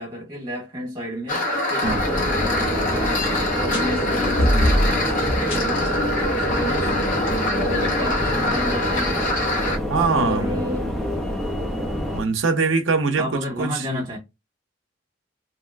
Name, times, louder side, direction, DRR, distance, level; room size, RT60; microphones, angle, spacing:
voice 1, 0.0-5.1 5.5-6.0 6.2-6.9 7.5-9.3 9.9-10.9 13.2-14.2, equal, 20° right, 1.5 m, -32 dB
sound 1, 1.3-9.8, left 1 dB, 40° left, 0.7 m, -24 dB
sound 2, 1.8-12.2, equal, 5° left, 0.6 m, -27 dB
sound 3, 3.6-8.9, left 1 dB, 80° left, 1.3 m, -27 dB
voice 2, 6.5-6.8 9.9-10.7 12.1-14.0, right 4 dB, 75° right, 0.6 m, -23 dB
2.9 x 2.8 x 2.4 m
head